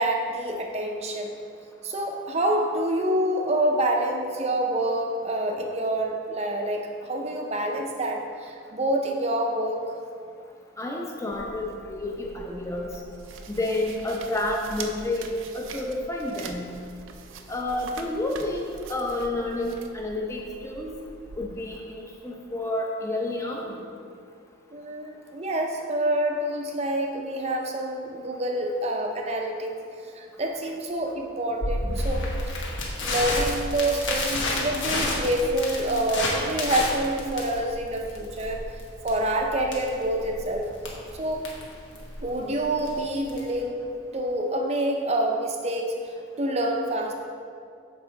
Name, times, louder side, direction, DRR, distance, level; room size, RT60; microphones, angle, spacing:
voice 1, 0.0-1.3 1.8-9.8 24.7-29.8 30.1-32.3 33.0-38.7 39.0-40.7 41.1-41.5 42.2-46.0 46.4-47.1, right 1 dB, 30° right, 2 dB, 0.6 m, -27 dB
voice 2, 10.8-12.9 13.5-16.7 17.5-20.9 21.4-23.8, left 1 dB, 15° left, -1 dB, 0.7 m, -30 dB
sound 1, 11.3-21.5, right 4 dB, 75° right, 0.5 m, -44 dB
Crackle, 31.6-43.6, left 2 dB, 70° left, 1.2 m, -30 dB
7.1 x 4.8 x 3.8 m, 2.3 s
head